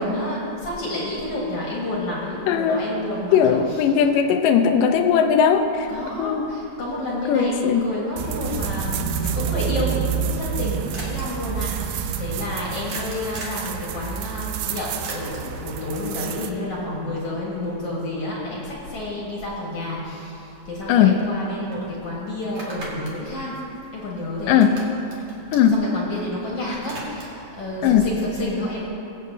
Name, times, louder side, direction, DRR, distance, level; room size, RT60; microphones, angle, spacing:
voice 1, 0.0-3.8 5.9-23.6 23.9-24.6 25.7-28.9, left 1 dB, 50° left, -5 dB, 2.2 m, -30 dB
voice 2, 2.5-2.9 3.3-5.9 6.2-6.5 7.3-7.9 20.9-21.3 24.5-24.8 25.5-25.8 27.8-28.1, left 8 dB, 80° left, 7 dB, 2.1 m, -18 dB
sound 1, 8.2-16.5, right 7 dB, 80° right, 2.2 m, -28 dB
sound 2, 10.9-11.2 12.9-13.7 15.0-15.6 19.8-19.9 20.2-21.4 21.7-21.8 22.4-24.2 24.5-26.3 26.6-27.5, right 2 dB, 45° right, 2.4 m, -39 dB
22.5 x 8.2 x 2.8 m, 2.9 s
omnidirectional pair, 4.2 m